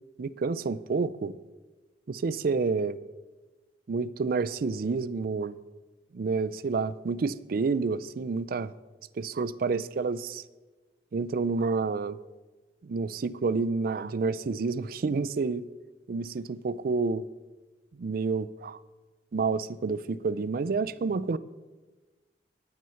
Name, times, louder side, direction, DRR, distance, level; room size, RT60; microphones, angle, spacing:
voice 1, 0.2-1.3 2.1-3.0 3.9-5.5 6.1-8.7 9.1-10.4 11.1-12.2 12.8-15.7 16.1-17.2 18.0-18.8 19.3-21.4, right 4 dB, 50° right, 0.4 m, -29 dB
9.3 x 9.1 x 5.7 m
head